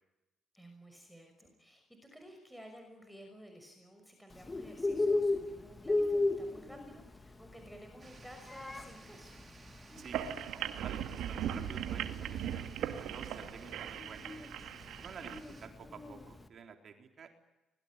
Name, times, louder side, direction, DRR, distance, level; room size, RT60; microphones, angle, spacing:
voice 1, 0.5-9.4, equal, ahead, 4 dB, 5.9 m, -55 dB
Bird, 4.3-16.4, left 2 dB, 20° left, 2.4 m, -36 dB
sound 1, 8.0-15.7, right 4 dB, 30° right, 5.0 m, -58 dB
sound 2, 10.0-15.4, right 10 dB, 85° right, 2.0 m, -39 dB
voice 2, 10.5-11.0 11.3-14.3 15.0-17.3, right 6 dB, 55° right, 5 dB, 3.6 m, -51 dB
25.0 x 21.5 x 9.9 m, 1.0 s
cardioid pair, 90°, 0 cm